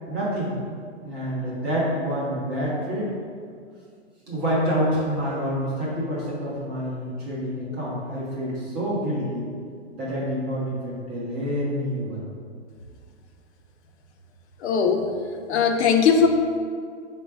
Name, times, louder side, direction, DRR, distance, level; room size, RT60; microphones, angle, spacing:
voice 1, 0.1-0.6 1.0-3.1 4.3-9.5 9.9-12.2, equal, 10° right, -7 dB, 0.3 m, -27 dB
voice 2, 14.6-15.0 15.5-16.3, left 6 dB, 65° left, 4 dB, 0.6 m, -19 dB
3.8 x 2.2 x 4.5 m, 2.1 s
hypercardioid pair, 130°, 36 cm